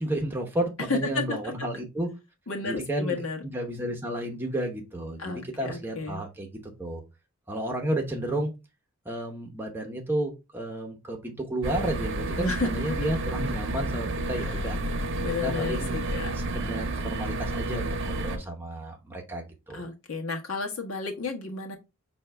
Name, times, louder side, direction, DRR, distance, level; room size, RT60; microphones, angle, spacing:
voice 1, 0.0-2.1 2.7-7.0 7.5-8.5 9.0-14.8 15.4-16.0 16.2-19.8, right 1 dB, 10° right, 0.8 m, -32 dB
voice 2, 0.9-1.7 2.5-3.4 5.2-6.2 12.4-13.0 14.4-14.6 15.2-16.3 19.7-21.8, left 3 dB, 80° left, 1.2 m, -32 dB
sound 1, 11.6-18.4, right 2 dB, 60° right, 0.7 m, -30 dB
5.3 x 2.7 x 3.3 m
head